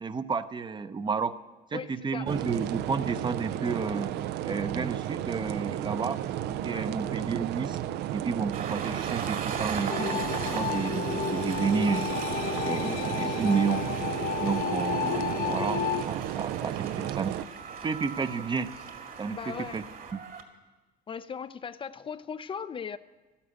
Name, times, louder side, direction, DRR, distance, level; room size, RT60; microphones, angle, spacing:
voice 1, 0.0-1.3 1.7-4.1 4.4-7.8 8.1-12.1 12.6-13.8 14.4-17.3 17.8-18.7 19.2-19.8 20.1-20.2, right 5 dB, 25° right, 12 dB, 0.7 m, -31 dB
voice 2, 1.7-2.3 6.6-6.9 12.8-13.0 18.2-18.3 19.3-19.8 21.1-23.0, left 6 dB, 30° left, 13 dB, 0.4 m, -38 dB
sound 1, 2.3-17.4, right 12 dB, 85° right, 0.6 m, -33 dB
Train, 8.5-20.4, right 6 dB, 60° right, 2.2 m, -39 dB
sound 2, 9.9-16.0, left 9 dB, 50° left, 0.9 m, -32 dB
12.5 x 11.5 x 8.1 m, 1.2 s
cardioid pair, 110°, 17 cm